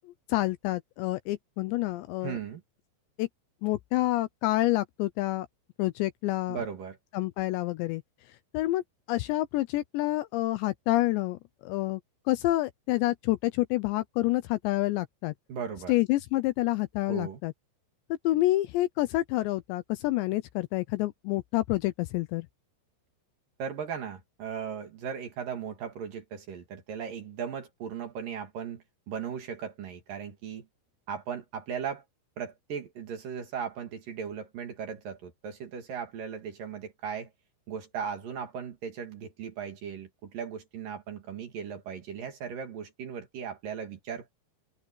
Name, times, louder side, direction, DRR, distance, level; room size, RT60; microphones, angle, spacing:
voice 1, 0.3-2.4 3.2-3.3 3.6-5.5 5.8-6.6 7.1-8.0 8.5-8.8 9.1-12.0 12.3-15.3 15.9-17.5 18.2-22.5, left 17 dB, 80° left, 2.7 m, -28 dB
voice 2, 2.2-2.6 6.5-7.0 15.5-15.9 17.1-17.4 23.6-30.7 31.1-32.0 32.4-37.3 37.7-44.3, right 7 dB, 55° right, 3.2 m, -37 dB
omnidirectional pair, 5.6 m